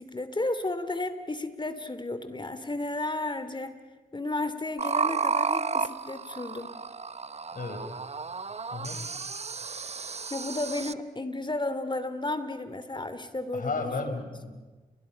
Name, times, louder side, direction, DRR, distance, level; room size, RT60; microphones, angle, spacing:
voice 1, 0.0-3.8 4.1-6.8 10.3-14.1, left 2 dB, 30° left, 11 dB, 2.7 m, -33 dB
sound 1, 4.8-10.9, right 5 dB, 40° right, 1.0 m, -32 dB
voice 2, 7.5-7.9 8.7-9.0 13.5-14.5, left 3 dB, 55° left, 6 dB, 5.0 m, -33 dB
30.0 x 23.0 x 5.9 m, 1.3 s
supercardioid pair, 45°, 16 cm